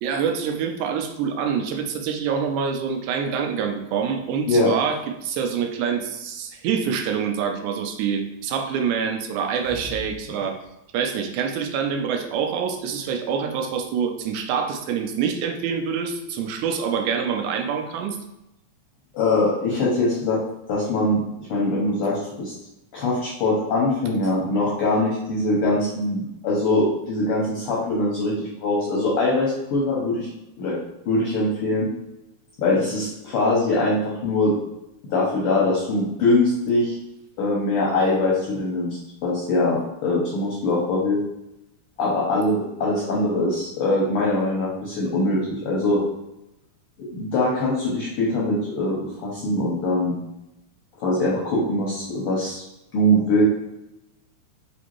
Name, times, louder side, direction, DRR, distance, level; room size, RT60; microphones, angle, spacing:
voice 1, 0.0-10.6 10.9-18.2, right 6 dB, 85° right, 5 dB, 2.0 m, -26 dB
sound 1, 9.4-10.3 10.6-10.7, left 1 dB, 50° right, 1.0 m, -39 dB
voice 2, 19.1-20.4 20.7-21.2 21.5-22.5 22.9-30.3 30.6-30.8 31.1-31.9 32.6-34.5 35.1-36.9 37.4-41.2 42.0-46.0 47.1-50.1 51.0-52.6 52.9-53.4, left 2 dB, 75° left, -5 dB, 1.3 m, -22 dB
4.9 x 2.6 x 2.9 m, 0.89 s
omnidirectional pair, 3.4 m